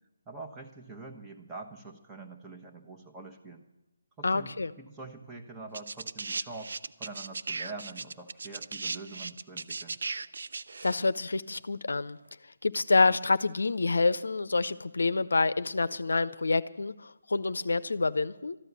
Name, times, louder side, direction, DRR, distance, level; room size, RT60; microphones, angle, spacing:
voice 1, 0.3-3.6 4.2-10.0, right 3 dB, 10° right, 1 dB, 1.2 m, -45 dB
voice 2, 4.2-4.7 10.8-12.2 12.6-18.6, left 3 dB, 75° left, 15 dB, 0.5 m, -27 dB
sound 1, 5.7-11.0 12.0-12.1, right 4 dB, 65° right, 0.5 m, -37 dB
13.5 x 10.5 x 8.1 m, 0.95 s
figure-of-eight pair, 150°, 0 cm